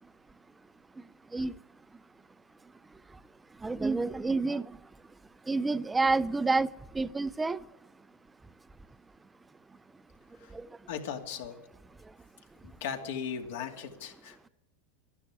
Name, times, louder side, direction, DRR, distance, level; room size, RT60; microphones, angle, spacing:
voice 1, 3.6-4.8 5.5-6.7 6.9-7.6 10.5-10.7, right 3 dB, 10° right, 0.4 m, -28 dB
voice 2, 10.9-11.6 12.6-14.5, left 7 dB, 75° left, 2.4 m, -38 dB
12.5 x 11.5 x 9.7 m
supercardioid pair, 145°, 0 cm